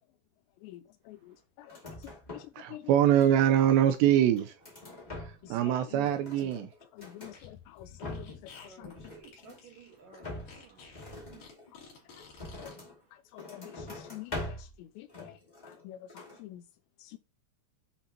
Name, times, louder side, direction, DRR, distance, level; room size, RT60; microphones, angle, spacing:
voice 1, 1.1-1.8 2.3-3.0 5.4-6.7 6.9-8.9 12.6-12.8 13.3-15.4 15.6-16.6 17.0-17.2, left 14 dB, 85° left, 2.6 m, -48 dB
sound 1, 1.6-2.6 2.9-3.7 4.1-5.6 5.9-7.4 7.8-8.5 8.8-9.7 10.2-13.0 13.3-14.8 15.1-15.8 16.1-16.4, left 2 dB, 35° left, 0.7 m, -44 dB
voice 2, 2.6-4.5 5.5-6.7, right 10 dB, 80° right, 2.6 m, -24 dB
Fart, 7.2-12.8, left 6 dB, 50° left, 3.7 m, -52 dB
voice 3, 8.6-11.5 11.8-12.3 12.9-13.2 13.6-13.7, right 5 dB, 60° right, 2.5 m, -57 dB
8.1 x 5.9 x 2.9 m
omnidirectional pair, 5.3 m